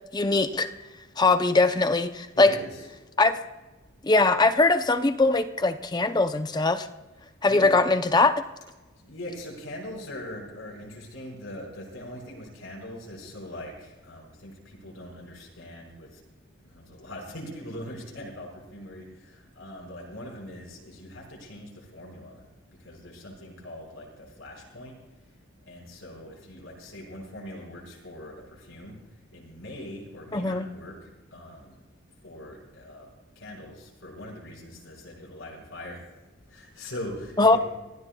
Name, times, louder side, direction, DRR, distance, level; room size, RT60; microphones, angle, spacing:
voice 1, 0.1-0.7 1.2-2.6 3.2-3.4 4.0-6.9 7.4-8.3 30.3-30.7 37.4-37.6, left 3 dB, 20° left, 9 dB, 0.6 m, -21 dB
voice 2, 2.3-2.9 7.5-7.7 9.0-16.2 16.6-22.4 22.8-25.0 25.6-29.0 29.3-31.8 32.2-33.1 33.3-36.1 36.5-37.6, left 1 dB, 80° left, -2 dB, 5.1 m, -41 dB
25.5 x 16.0 x 2.3 m, 1.2 s
head